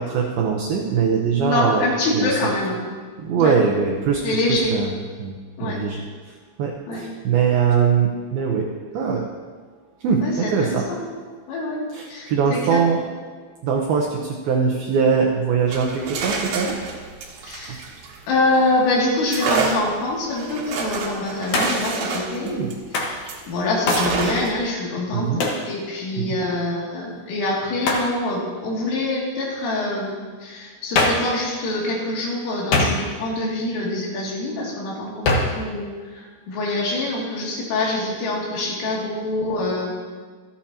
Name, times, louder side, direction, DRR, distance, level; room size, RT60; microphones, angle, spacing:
voice 1, 0.0-2.3 3.2-4.2 4.5-5.3 5.6-8.7 8.9-9.2 10.0-10.9 11.9-13.0 13.6-16.8 17.7-17.8 22.5-22.7 25.1-25.4 26.2-26.4, right 6 dB, 80° right, 0 dB, 2.1 m, -22 dB
voice 2, 1.4-2.8 3.4-3.6 4.2-4.7 5.6-5.8 6.9-7.0 10.2-11.0 11.5-11.8 12.1-12.8 17.4-17.8 18.3-22.6 23.5-40.0, left 2 dB, 85° left, -4 dB, 5.2 m, -25 dB
sound 1, 15.6-18.6 19.3-23.5 23.9-24.7, right 5 dB, 65° right, 2.7 m, -28 dB
Hands, 21.5-21.9 22.9-23.2 23.9-24.1 25.4-25.7 27.8-28.1 30.9-31.3 32.7-33.3 35.2-35.6, left 2 dB, 65° left, 2.0 m, -21 dB
26.0 x 8.8 x 2.9 m, 1.5 s
omnidirectional pair, 5.6 m